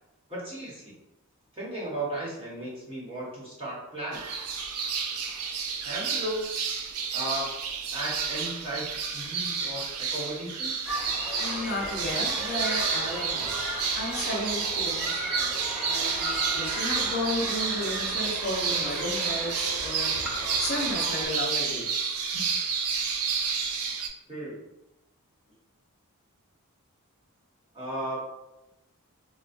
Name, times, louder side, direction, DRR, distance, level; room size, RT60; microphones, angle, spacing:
voice 1, 0.3-0.9 1.5-4.3 5.8-6.5 7.1-7.5 7.9-11.0 24.3-24.6 27.7-28.2, right 1 dB, 25° right, -7 dB, 1.1 m, -35 dB
sound 1, 4.1-24.1, right 6 dB, 75° right, 0.4 m, -30 dB
sound 2, 10.9-21.3, equal, ahead, 0.7 m, -36 dB
voice 2, 11.4-13.5 14.0-15.6 15.8-20.1 20.6-21.9 22.3-22.5, left 1 dB, 45° left, -3 dB, 0.7 m, -33 dB
4.1 x 2.2 x 2.5 m, 0.94 s
head